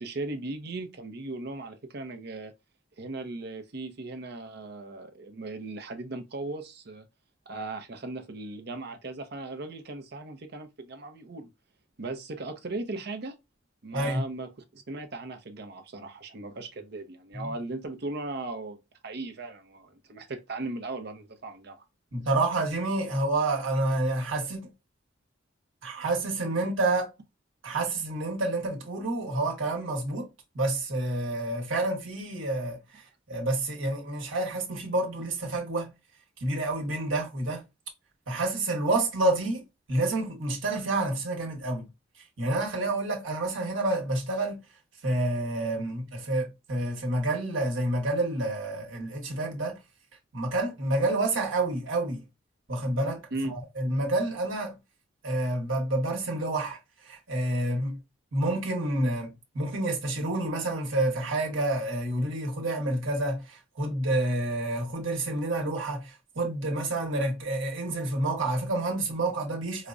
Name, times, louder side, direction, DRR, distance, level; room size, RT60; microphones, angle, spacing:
voice 1, 0.0-2.5 3.0-7.0 7.5-11.5 12.0-13.3 13.8-21.8 53.3-53.5, right 2 dB, 55° right, 0.6 m, -37 dB
voice 2, 13.9-14.2 17.3-17.5 22.1-24.7 25.8-27.1 27.6-30.3 30.5-35.9 36.4-37.7 38.3-41.9 42.4-44.6 45.0-49.8 50.3-52.2 52.7-54.8 55.2-56.8 57.0-58.0 58.3-69.9, right 2 dB, 75° right, 1.1 m, -29 dB
4.7 x 2.1 x 2.5 m
head